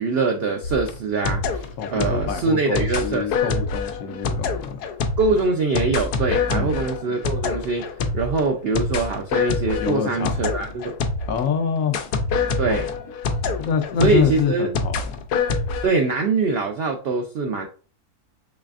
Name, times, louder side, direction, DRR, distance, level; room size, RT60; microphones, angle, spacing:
voice 1, 0.0-3.6 5.2-7.8 8.1-11.0 12.6-12.9 14.0-14.7 15.8-17.7, right 3 dB, 75° right, 0.5 m, -23 dB
sound 1, 0.6-11.5 11.9-15.9, left 4 dB, 85° left, 1.1 m, -26 dB
voice 2, 1.8-4.8 6.5-6.8 9.8-10.4 11.3-12.0 12.6-12.8 13.6-15.2, left 7 dB, 70° left, 0.9 m, -26 dB
4.0 x 3.2 x 2.4 m
omnidirectional pair, 1.7 m